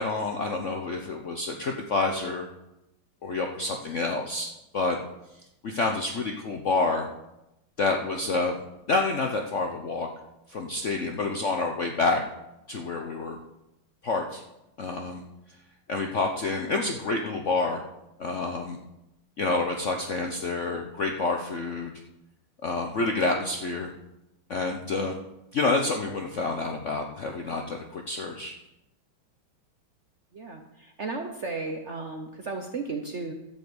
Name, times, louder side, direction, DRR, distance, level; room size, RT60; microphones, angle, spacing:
voice 1, 0.0-2.5 3.2-5.0 5.6-7.1 7.8-8.5 8.9-10.1 10.5-12.2 12.7-13.4 14.0-14.4 14.8-15.2 15.9-17.8 18.2-18.8 19.4-22.0 22.6-23.9 24.5-25.2 25.5-28.5, left 3 dB, 60° left, 3 dB, 0.8 m, -28 dB
voice 2, 30.3-33.3, right 3 dB, 55° right, 4 dB, 0.8 m, -34 dB
11.5 x 5.5 x 7.9 m, 0.90 s
omnidirectional pair, 2.2 m